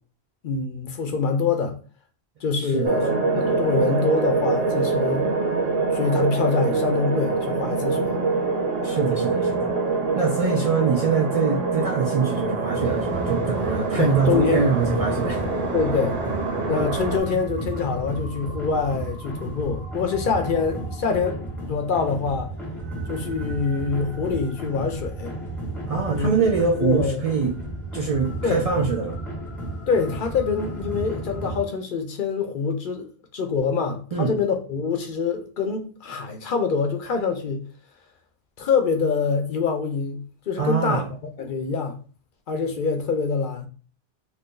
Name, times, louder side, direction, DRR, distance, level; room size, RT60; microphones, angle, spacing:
voice 1, 0.4-1.8 2.4-5.3 5.9-8.2 14.0-14.7 15.7-16.2 16.7-22.5 23.1-25.3 26.2-26.3 26.8-27.2 28.4-28.6 29.9-37.6 38.6-40.2 40.5-41.0 41.4-42.0 42.5-43.7, left 5 dB, 60° left, 0.7 m, -25 dB
voice 2, 2.6-3.0 8.8-9.7 10.1-15.4 25.9-27.5 27.9-29.2 34.1-34.4 40.6-41.1, right 5 dB, 50° right, 0.4 m, -23 dB
sound 1, 2.8-17.2, right 3 dB, 70° right, 0.9 m, -25 dB
sound 2, 12.8-31.6, right 1 dB, ahead, 0.9 m, -33 dB
2.6 x 2.5 x 3.6 m
omnidirectional pair, 1.0 m